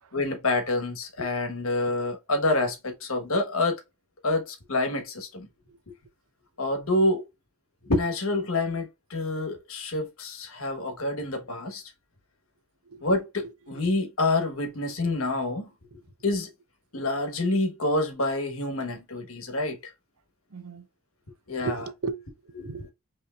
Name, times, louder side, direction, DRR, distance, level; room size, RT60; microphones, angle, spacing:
voice 1, 0.1-3.8 4.2-5.5 6.6-7.2 7.9-11.8 13.0-15.6 16.2-16.5 16.9-19.8 21.5-21.8 22.6-22.7, left 2 dB, 75° left, 1.2 m, -27 dB
voice 2, 20.5-20.9 21.6-22.9, right 5 dB, 80° right, 0.6 m, -36 dB
5.4 x 3.0 x 2.3 m
head